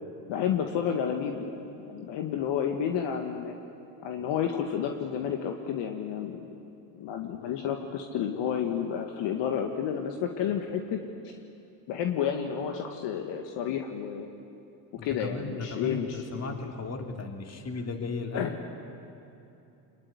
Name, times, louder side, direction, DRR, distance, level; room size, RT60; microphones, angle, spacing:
voice 1, 0.3-3.5 4.0-6.4 7.0-11.0 11.9-14.3 14.9-16.5 18.3-18.5, left 8 dB, 60° left, 4 dB, 2.0 m, -31 dB
voice 2, 15.0-18.6, left 3 dB, 30° left, 4 dB, 3.4 m, -36 dB
25.0 x 21.0 x 9.8 m, 2.9 s
supercardioid pair, 90°, 49 cm